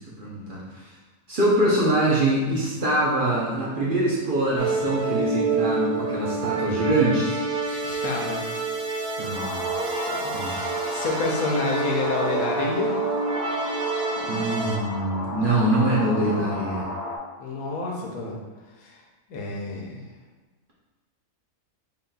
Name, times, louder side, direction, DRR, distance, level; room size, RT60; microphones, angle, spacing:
voice 1, 0.2-0.9 1.3-7.4 9.2-9.6 10.3-10.5 13.5-13.8 14.2-16.8, right 1 dB, 50° right, -6 dB, 0.7 m, -24 dB
sound 1, 4.6-14.8, right 3 dB, 85° right, 1.1 m, -28 dB
voice 2, 7.8-8.4 10.1-13.0 17.4-18.4 18.8-19.0 19.3-20.0, left 3 dB, 85° left, -1 dB, 1.2 m, -29 dB
sound 2, 9.3-17.2, left 2 dB, 60° left, 1.1 m, -34 dB
3.9 x 3.9 x 2.3 m, 1.2 s
omnidirectional pair, 1.5 m